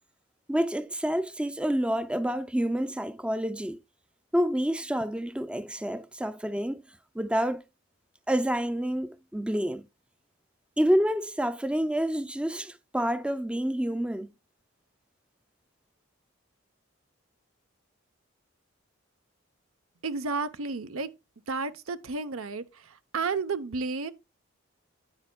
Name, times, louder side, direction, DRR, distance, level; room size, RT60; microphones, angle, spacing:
voice 1, 0.5-3.8 4.3-6.8 7.1-7.6 8.3-9.9 10.8-14.3, equal, 5° right, 0.4 m, -28 dB
voice 2, 20.0-21.1 21.5-24.1, right 4 dB, 85° right, 0.8 m, -32 dB
9.7 x 9.4 x 2.2 m
head